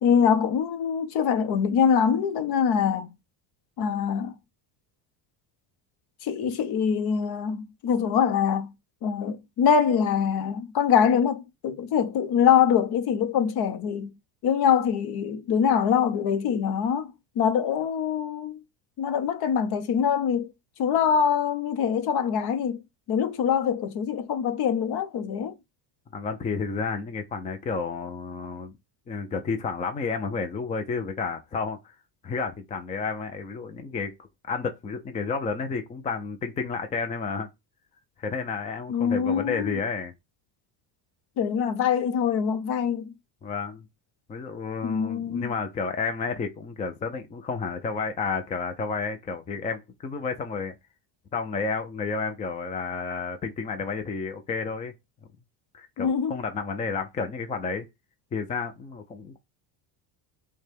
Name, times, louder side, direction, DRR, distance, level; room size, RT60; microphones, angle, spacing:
voice 1, 0.0-3.1 3.8-4.3 6.2-8.7 9.0-14.1 14.4-17.1 17.4-18.6 19.0-20.5 20.8-22.8 23.1-25.5 38.9-39.8 41.4-43.1 44.8-45.5 56.0-56.3, left 7 dB, 50° left, 0.8 m, -24 dB
voice 2, 26.1-28.7 29.1-31.9 32.2-34.1 34.5-37.5 38.2-40.1 43.4-43.9 44.3-50.7 51.3-54.9 55.7-57.9 58.3-59.4, left 4 dB, 20° left, 0.3 m, -31 dB
6.2 x 2.3 x 3.4 m
cardioid pair, 125°, 49 cm